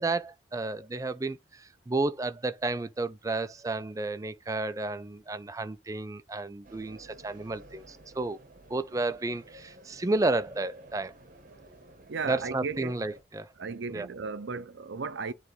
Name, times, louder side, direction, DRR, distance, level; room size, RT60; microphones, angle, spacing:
voice 1, 0.0-8.4 8.7-11.1 12.2-13.5 13.9-14.1, right 2 dB, 15° right, 0.3 m, -32 dB
sound 1, 6.6-13.2, right 1 dB, 45° right, 1.0 m, -53 dB
voice 2, 12.1-12.9 13.6-15.3, right 4 dB, 70° right, 0.6 m, -35 dB
9.2 x 3.2 x 3.2 m
head